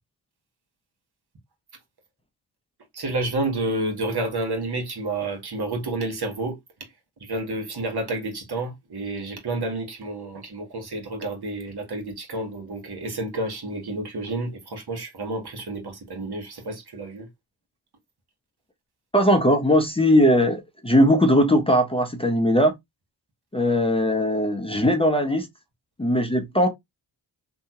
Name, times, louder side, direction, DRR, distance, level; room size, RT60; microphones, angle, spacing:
voice 1, 2.9-6.6 7.2-17.3, right 2 dB, 55° right, 1.3 m, -30 dB
voice 2, 19.1-22.7 23.5-25.5 26.0-26.7, equal, 10° left, 0.8 m, -19 dB
2.9 x 2.3 x 2.8 m
supercardioid pair, 40°, 46 cm